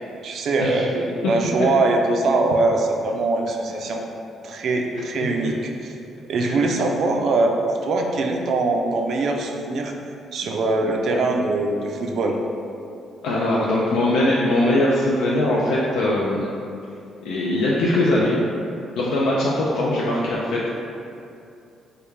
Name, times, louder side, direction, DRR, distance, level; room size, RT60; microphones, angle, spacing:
voice 1, 0.2-4.0 4.4-5.5 5.8-5.9 6.3-9.9 10.3-12.4, right 2 dB, 65° right, 2 dB, 0.3 m, -22 dB
voice 2, 13.2-16.5 17.2-18.4 19.0-20.7, left 1 dB, 90° left, -5 dB, 0.3 m, -21 dB
3.3 x 2.3 x 3.1 m, 2.6 s
cardioid pair, 90°, 0 cm